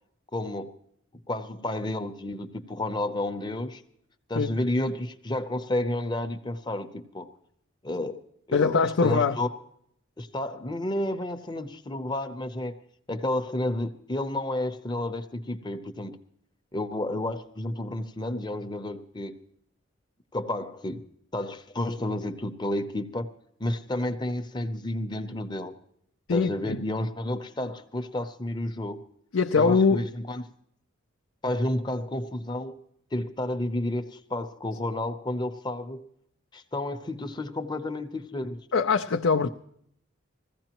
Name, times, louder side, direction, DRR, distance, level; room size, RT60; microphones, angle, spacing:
voice 1, 0.3-0.8 1.3-3.8 4.3-7.3 7.8-8.2 8.5-9.5 10.2-12.8 13.1-16.2 16.7-19.4 20.3-21.1 21.3-23.3 23.6-25.8 26.3-29.0 29.5-30.4 31.4-32.8 33.1-36.0 36.5-38.7 39.4-39.5, left 1 dB, 20° left, 0.7 m, -31 dB
voice 2, 8.5-9.4 26.3-26.8 29.3-30.0 38.7-39.5, left 5 dB, 75° left, 0.5 m, -22 dB
21.0 x 15.5 x 3.0 m
head